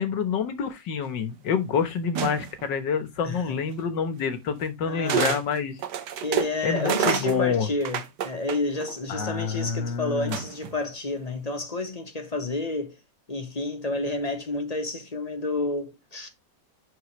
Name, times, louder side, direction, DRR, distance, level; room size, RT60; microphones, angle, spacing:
voice 1, 0.0-5.8 6.6-7.7 9.1-10.4, left 6 dB, 85° left, 1.9 m, -27 dB
sound 1, 2.1-2.7 3.8-3.9 5.1-5.4 5.8-8.9 10.3-10.8, right 8 dB, 75° right, 1.5 m, -28 dB
voice 2, 3.2-3.6 4.9-5.4 6.2-13.0 13.3-16.3, left 2 dB, 25° left, 1.2 m, -30 dB
11.0 x 4.4 x 3.1 m
omnidirectional pair, 1.9 m